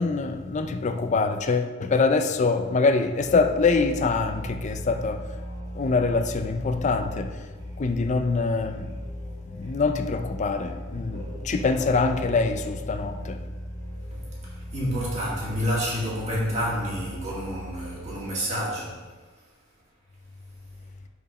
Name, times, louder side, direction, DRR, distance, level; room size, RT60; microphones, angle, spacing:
voice 1, 0.0-5.3 5.7-7.5 7.8-9.0 9.5-13.4, left 4 dB, 35° left, 0.4 m, -24 dB
Musical instrument, 3.2-18.2, equal, 90° right, 2.1 m, -38 dB
voice 2, 14.1-19.5, equal, 35° right, 2.2 m, -29 dB
5.2 x 4.8 x 4.9 m
head